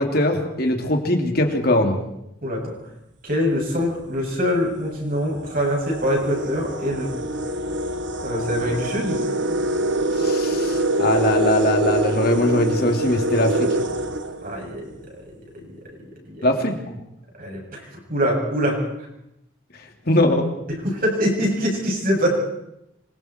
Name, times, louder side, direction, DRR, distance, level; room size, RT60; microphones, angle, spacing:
voice 1, 0.0-2.0 10.2-13.7 16.4-17.0 20.1-20.4, left 1 dB, 50° left, 3 dB, 3.3 m, -21 dB
voice 2, 2.4-2.7 3.2-7.1 8.2-9.2 14.4-15.2 16.3-16.5 17.4-17.8 18.1-18.8 20.8-22.4, equal, 45° right, -1 dB, 7.8 m, -24 dB
sound 1, 3.8-3.9 4.7-4.8 5.2-15.0, right 1 dB, 65° right, 1.5 m, -25 dB
26.5 x 25.0 x 4.7 m, 0.83 s
head